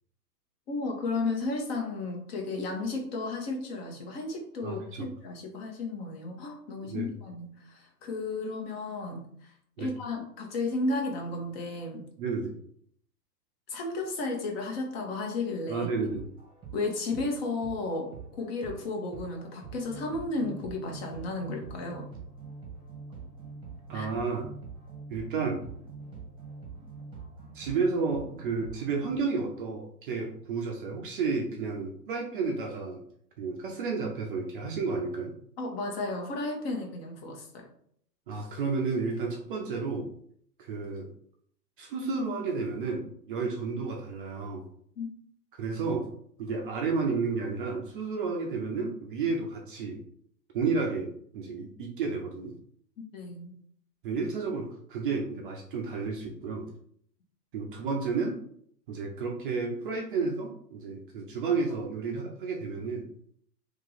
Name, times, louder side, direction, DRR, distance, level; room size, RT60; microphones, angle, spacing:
voice 1, 0.7-9.5 9.8-12.1 13.7-15.9 16.7-22.1 23.9-24.1 35.6-37.7 45.0-45.1 53.1-53.5, left 3 dB, 35° left, 2 dB, 1.0 m, -33 dB
voice 2, 4.6-5.1 6.8-7.1 9.8-9.9 12.2-12.5 15.7-16.2 23.9-24.5 25.1-25.7 27.5-33.0 33.4-35.3 38.3-40.1 40.6-41.1 41.8-44.6 45.5-46.1 46.4-50.0 50.5-52.6 54.0-56.7 57.5-58.4 58.9-63.1, right 4 dB, 35° right, 1 dB, 0.5 m, -31 dB
sound 1, 16.0-29.2, right 4 dB, 10° right, 1.0 m, -45 dB
2.9 x 2.8 x 3.9 m, 0.65 s
hypercardioid pair, 130°, 50 cm